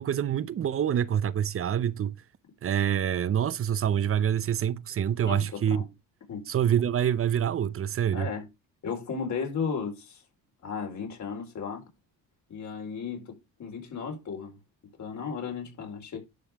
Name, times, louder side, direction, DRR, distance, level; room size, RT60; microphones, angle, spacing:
voice 1, 0.0-2.2 2.6-5.8 6.5-8.3, right 9 dB, 40° right, 0.7 m, -26 dB
voice 2, 5.3-5.9 6.3-6.5 8.1-8.5 8.8-10.2 10.6-11.9 12.5-14.6 15.0-16.2, left 6 dB, 55° left, 4.4 m, -35 dB
11.5 x 5.4 x 3.5 m
cardioid pair, 95°, 34 cm